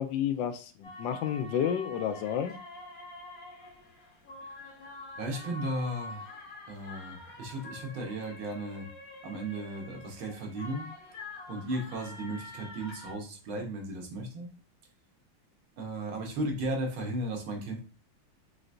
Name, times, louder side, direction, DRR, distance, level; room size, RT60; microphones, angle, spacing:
voice 1, 0.0-2.6, left 9 dB, 75° left, 8 dB, 1.1 m, -31 dB
sound 1, 0.8-13.1, left 2 dB, 50° left, 1.5 m, -46 dB
voice 2, 5.2-6.4 6.7-8.9 9.2-10.9 11.5-14.5 15.8-17.8, right 1 dB, 75° right, 1 dB, 1.9 m, -35 dB
4.8 x 3.2 x 2.6 m, 0.36 s
omnidirectional pair, 2.2 m